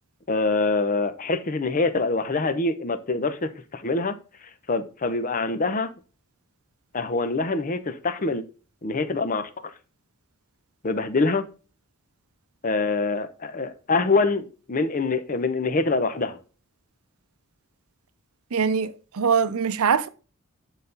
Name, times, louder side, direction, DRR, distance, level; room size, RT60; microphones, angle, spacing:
voice 1, 0.3-4.2 4.7-5.9 6.9-8.4 8.8-9.5 10.8-11.5 12.6-16.4, left 3 dB, 40° left, 0.7 m, -25 dB
voice 2, 18.5-20.1, right 6 dB, 80° right, 0.6 m, -23 dB
9.0 x 4.1 x 3.9 m
head